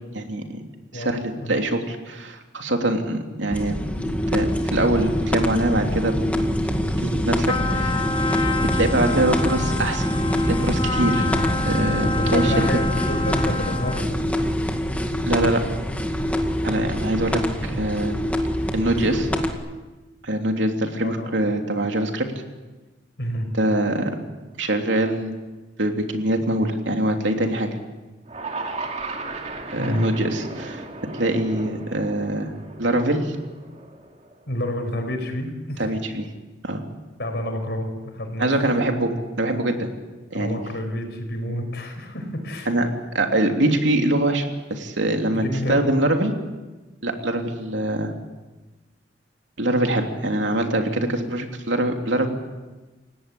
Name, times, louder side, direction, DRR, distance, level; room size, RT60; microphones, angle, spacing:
voice 1, 0.1-0.6 0.9-3.8 4.0-6.1 7.0-8.0 8.7-10.1 10.5-11.3 11.6-12.7 15.3-15.6 16.6-18.1 18.7-19.3 20.2-22.3 23.5-24.2 24.6-25.4 25.8-27.7 29.7-30.8 31.1-32.5 32.8-33.4 35.8-36.3 36.6-36.8 38.4-39.9 40.3-40.6 42.7-42.9 43.1-46.3 47.0-48.1 49.6-52.3, right 1 dB, 80° right, 3 dB, 3.1 m, -23 dB
voice 2, 0.9-1.6 12.0-14.2 21.0-21.3 23.2-23.5 29.8-30.1 34.5-36.0 37.2-38.6 40.3-42.7 45.3-45.8, left 1 dB, 60° left, 5 dB, 5.6 m, -29 dB
sound 1, 3.5-19.5, equal, 10° left, 2.1 m, -24 dB
Trumpet, 7.4-14.1, left 3 dB, 25° left, 1.1 m, -29 dB
sound 2, 28.2-34.5, right 3 dB, 35° right, 2.5 m, -35 dB
30.0 x 17.5 x 8.4 m, 1.2 s
head